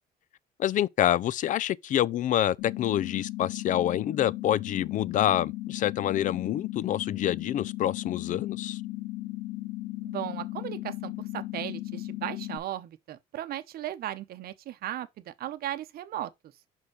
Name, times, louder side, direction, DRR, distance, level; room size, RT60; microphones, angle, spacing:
voice 1, 0.6-8.8, left 12 dB, 50° left, 0.4 m, -27 dB
sound 1, 2.6-12.6, left 18 dB, 85° left, 1.5 m, -36 dB
voice 2, 10.0-16.3, right 12 dB, 65° right, 0.8 m, -36 dB
5.6 x 4.5 x 4.7 m
cardioid pair, 110°, 17 cm